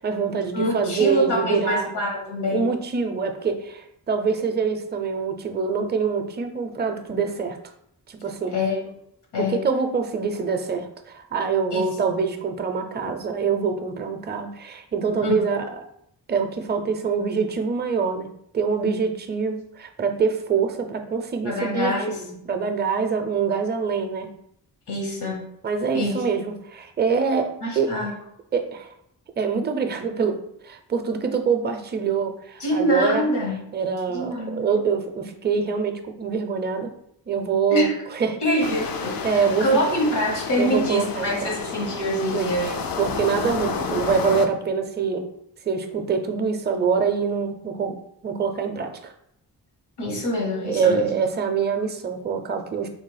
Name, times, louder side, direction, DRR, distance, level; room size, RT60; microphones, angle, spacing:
voice 1, 0.0-1.9 2.5-7.6 8.1-8.6 9.4-15.8 16.3-18.3 18.5-24.3 25.6-27.9 28.5-28.9 29.4-30.4 30.6-33.3 33.7-36.9 37.3-37.9 38.2-38.4 39.2-39.7 40.6-41.6 42.3-45.2 45.6-48.0 48.2-49.1 50.7-52.9, right 5 dB, 25° right, 6 dB, 0.4 m, -25 dB
voice 2, 0.5-2.7 8.5-8.9 9.3-9.6 11.7-11.9 15.2-15.4 21.4-22.2 24.9-25.5 25.9-26.2 27.6-28.1 32.6-33.5 34.1-34.7 37.7-38.0 38.4-39.2 39.6-42.7 50.0-51.2, equal, 75° left, 0 dB, 1.1 m, -25 dB
sound 1, 38.6-44.5, left 5 dB, 60° left, 0.5 m, -31 dB
3.3 x 2.0 x 3.2 m, 0.73 s
cardioid pair, 45°, 41 cm